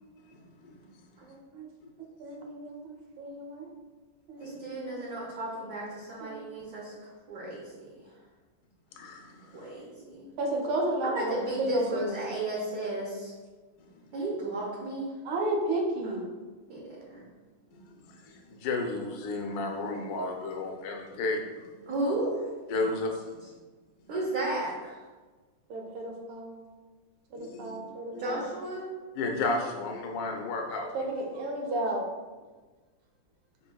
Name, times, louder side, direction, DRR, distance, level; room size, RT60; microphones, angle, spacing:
voice 1, 0.3-0.7 1.8-1.9 4.4-4.5 8.9-9.7 17.7-21.7 22.7-23.6 27.3-27.8 28.1-28.4 29.1-31.0, left 2 dB, 65° left, 1 dB, 0.9 m, -33 dB
voice 2, 1.3-1.7 2.2-3.7 4.3-5.0 6.2-6.4 9.7-12.1 15.2-16.3 25.7-26.6 27.3-28.4 30.9-32.0, right 1 dB, 85° right, 1 dB, 1.6 m, -33 dB
voice 3, 4.4-8.0 9.5-10.3 11.0-13.3 14.1-15.1 16.7-17.2 21.9-22.5 24.1-25.0 28.1-28.9, right 2 dB, 55° right, -6 dB, 1.2 m, -34 dB
5.1 x 4.3 x 2.2 m, 1.3 s
omnidirectional pair, 2.2 m